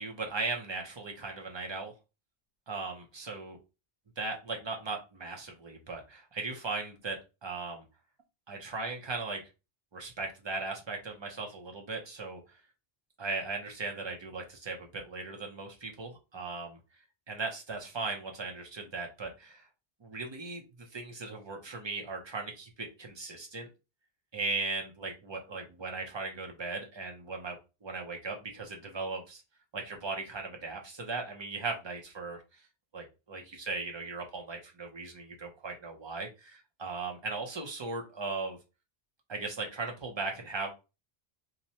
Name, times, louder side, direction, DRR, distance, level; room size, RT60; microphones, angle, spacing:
voice 1, 0.0-1.9 2.7-3.6 4.2-7.8 8.5-9.4 9.9-12.6 13.2-16.8 17.3-19.6 20.0-20.6 20.9-23.7 24.3-29.4 29.7-32.7 32.9-38.6 39.3-40.7, right 3 dB, 35° right, 2 dB, 0.5 m, -38 dB
2.7 x 2.1 x 2.8 m, 0.29 s
omnidirectional pair, 1.0 m